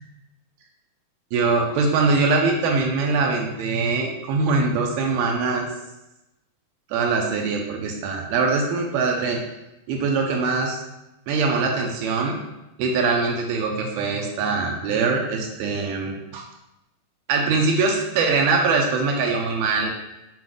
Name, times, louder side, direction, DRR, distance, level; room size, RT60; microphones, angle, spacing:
voice 1, 1.3-5.7 6.9-9.4 9.9-10.8 11.3-12.4 12.8-16.4 17.3-19.9, right 4 dB, 80° right, 1 dB, 2.6 m, -22 dB
7.7 x 5.0 x 3.7 m, 0.96 s
omnidirectional pair, 4.6 m